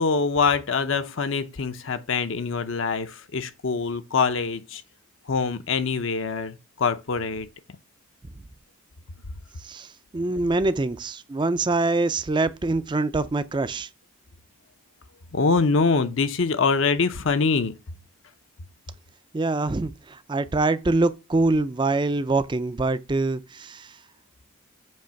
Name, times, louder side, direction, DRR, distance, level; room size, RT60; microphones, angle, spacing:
voice 1, 0.0-4.8 5.3-7.5 15.3-17.8, left 4 dB, 60° left, 0.6 m, -24 dB
voice 2, 10.1-13.9 19.3-23.9, right 2 dB, 20° right, 0.4 m, -24 dB
7.6 x 3.1 x 5.7 m
head